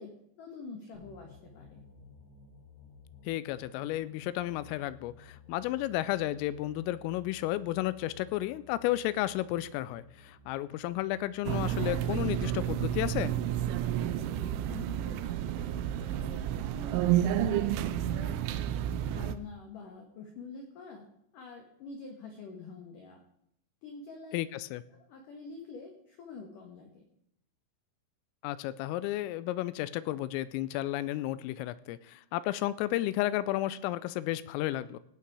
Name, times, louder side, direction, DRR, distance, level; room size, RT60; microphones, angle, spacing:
voice 1, 0.0-1.8 14.0-16.5 16.7-18.4 19.0-21.1 21.3-23.2 23.8-24.4 24.9-27.0, left 4 dB, 65° left, 3 dB, 2.1 m, -46 dB
sound 1, 0.9-12.2, left 5 dB, 50° left, 7.0 m, -56 dB
voice 2, 3.3-13.3 24.3-24.8 28.4-35.0, left 15 dB, 85° left, 16 dB, 3.1 m, -32 dB
sound 2, 11.5-19.4, right 11 dB, 85° right, 2.8 m, -30 dB
17.5 x 8.4 x 4.8 m, 0.75 s
omnidirectional pair, 6.0 m